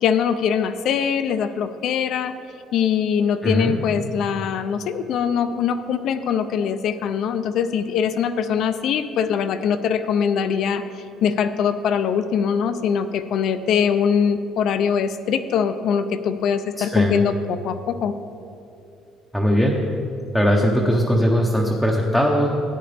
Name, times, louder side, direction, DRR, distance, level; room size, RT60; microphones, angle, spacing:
voice 1, 0.0-2.3 2.7-10.8 11.2-18.1, left 7 dB, 55° left, 10 dB, 0.4 m, -22 dB
voice 2, 3.4-3.8 16.8-17.2 19.3-19.8 20.3-22.5, equal, ahead, -1 dB, 0.6 m, -19 dB
13.5 x 9.5 x 3.4 m, 2.6 s
cardioid pair, 170°, 0 cm